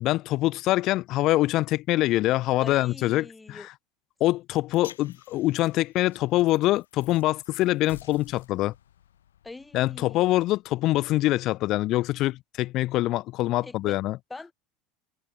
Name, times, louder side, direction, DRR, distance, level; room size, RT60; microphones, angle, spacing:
voice 1, 0.0-3.7 4.2-8.7 9.7-14.2, left 17 dB, 50° left, 0.7 m, -24 dB
voice 2, 2.6-3.7 9.4-10.3 13.6-14.0 14.3-14.5, left 3 dB, 10° left, 2.1 m, -43 dB
sound 1, 4.7-11.1, left 11 dB, 75° left, 2.5 m, -52 dB
figure-of-eight pair, 75°, 0 cm